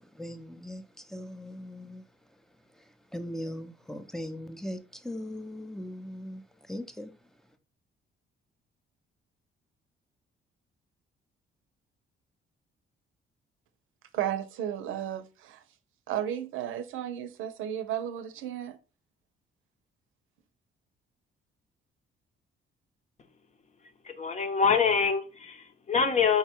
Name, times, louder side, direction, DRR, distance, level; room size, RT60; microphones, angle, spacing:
voice 1, 0.2-2.0 3.1-6.4 6.7-7.1, left 1 dB, ahead, 0.6 m, -39 dB
voice 2, 14.1-15.6 16.1-18.8, right 10 dB, 85° right, 0.6 m, -33 dB
voice 3, 24.0-26.4, left 6 dB, 35° left, 0.8 m, -25 dB
4.7 x 2.2 x 4.4 m
cardioid pair, 90°, 20 cm